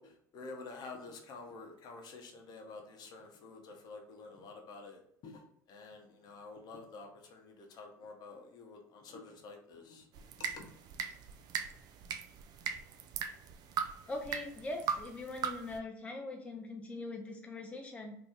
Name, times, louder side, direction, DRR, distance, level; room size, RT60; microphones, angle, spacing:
voice 1, 0.0-5.4 5.7-10.1 10.5-10.7, left 3 dB, 50° left, 2 dB, 0.8 m, -49 dB
sound 1, 10.1-15.8, right 7 dB, 50° right, 0.4 m, -39 dB
voice 2, 14.1-18.2, left 2 dB, 15° left, 2 dB, 0.5 m, -42 dB
2.7 x 2.6 x 3.5 m, 0.70 s
hypercardioid pair, 80°, 9 cm